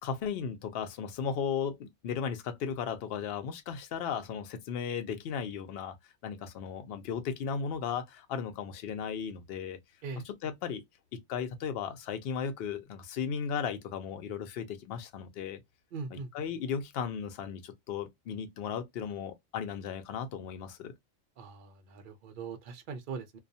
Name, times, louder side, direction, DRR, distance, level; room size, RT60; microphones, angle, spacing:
voice 1, 0.0-6.0 6.2-9.8 10.3-10.8 11.3-15.6 16.1-20.9, left 7 dB, 60° left, 0.7 m, -36 dB
voice 2, 15.9-16.3 21.4-23.4, right 5 dB, 60° right, 0.5 m, -41 dB
2.3 x 2.2 x 2.6 m
omnidirectional pair, 1.3 m